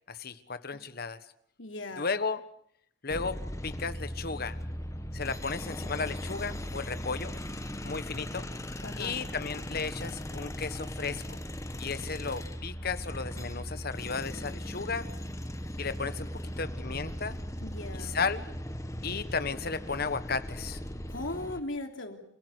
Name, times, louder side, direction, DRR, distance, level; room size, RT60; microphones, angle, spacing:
voice 1, 0.1-1.2 2.0-2.4 3.0-4.6 5.1-7.3 7.8-8.4 9.0-11.4 11.8-15.1 15.8-16.3 16.6-17.4 17.9-18.4 19.0-20.8, left 4 dB, 50° left, 12 dB, 1.4 m, -34 dB
voice 2, 1.6-2.1 8.8-9.2 17.6-18.2 21.1-22.2, left 2 dB, 75° left, 4 dB, 3.4 m, -38 dB
sound 1, 3.1-21.6, equal, 15° left, 1.4 m, -38 dB
29.5 x 17.0 x 8.2 m, 0.69 s
head